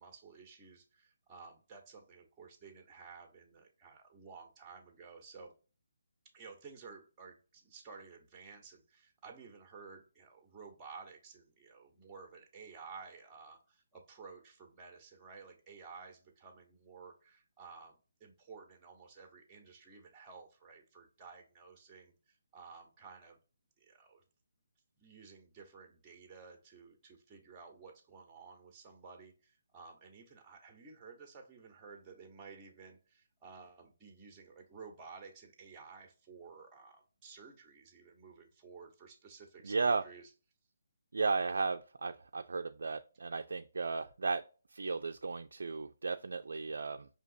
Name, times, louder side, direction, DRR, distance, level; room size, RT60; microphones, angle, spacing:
voice 1, 0.0-5.5 6.3-23.4 23.8-24.2 25.0-40.3, right 5 dB, 15° right, 1.0 m, -54 dB
voice 2, 39.6-40.0 41.1-44.4 44.7-47.1, right 4 dB, 75° right, 0.3 m, -35 dB
5.0 x 2.8 x 2.6 m
hypercardioid pair, 155°, 0 cm